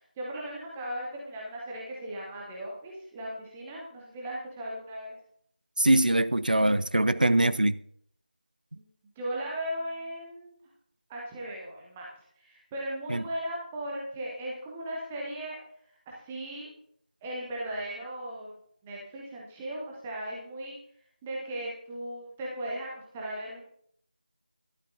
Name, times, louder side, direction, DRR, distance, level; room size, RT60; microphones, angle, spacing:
voice 1, 0.2-5.2 8.8-8.9 9.2-10.6 11.1-12.1 12.4-15.6 16.1-16.7 17.2-18.5 18.8-20.8 21.2-23.6, right 1 dB, 5° right, 0.3 m, -37 dB
voice 2, 5.8-7.8 13.1-13.2, right 1 dB, 65° right, 0.5 m, -23 dB
17.5 x 11.5 x 2.6 m
figure-of-eight pair, 170°, 5 cm